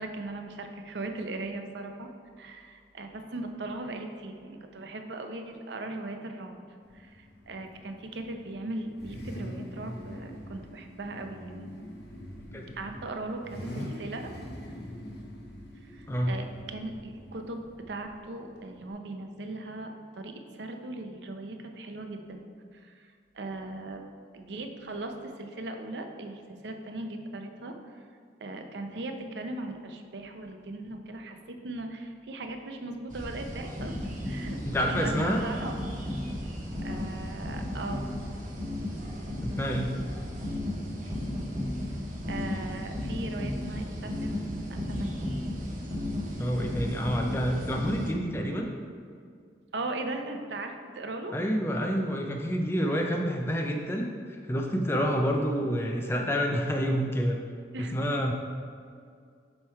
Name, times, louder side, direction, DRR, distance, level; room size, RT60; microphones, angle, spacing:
voice 1, 0.0-2.1 2.4-6.6 6.9-11.7 12.8-14.3 15.8-24.0 24.3-28.0 28.4-35.8 36.8-38.1 42.3-45.2 49.7-51.4 57.7-58.3, right 2 dB, 75° right, 5 dB, 0.6 m, -39 dB
Car / Idling / Accelerating revving vroom, 6.8-18.9, equal, 70° left, 0.9 m, -43 dB
voice 2, 16.1-16.4 34.6-35.4 39.4-39.9 46.4-48.7 51.3-57.4 57.8-58.3, equal, 15° left, 1 dB, 0.4 m, -28 dB
sound 1, 33.1-48.1, equal, 45° right, 0.9 m, -40 dB
sound 2, 33.8-48.4, left 1 dB, 25° right, 1.3 m, -35 dB
7.3 x 3.2 x 4.7 m, 2.2 s
head